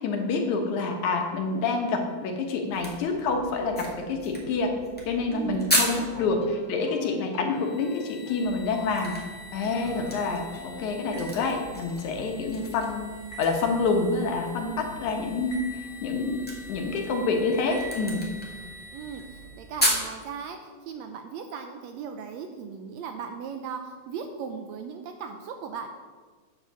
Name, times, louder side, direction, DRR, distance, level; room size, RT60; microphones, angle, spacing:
voice 1, 0.0-4.7 5.1-9.1 9.5-13.1 13.4-16.4 16.7-18.2, left 3 dB, 75° left, 3 dB, 2.5 m, -27 dB
sound 1, 2.7-6.3 8.4-20.1, equal, 5° left, 0.9 m, -35 dB
voice 2, 5.3-6.3 18.9-25.9, right 6 dB, 80° right, 5 dB, 1.6 m, -38 dB
sound 2, 5.8-10.9, left 4 dB, 60° left, 1.7 m, -45 dB
sound 3, 7.5-19.7, equal, 35° left, 2.7 m, -45 dB
8.8 x 5.0 x 6.9 m, 1.5 s
omnidirectional pair, 3.5 m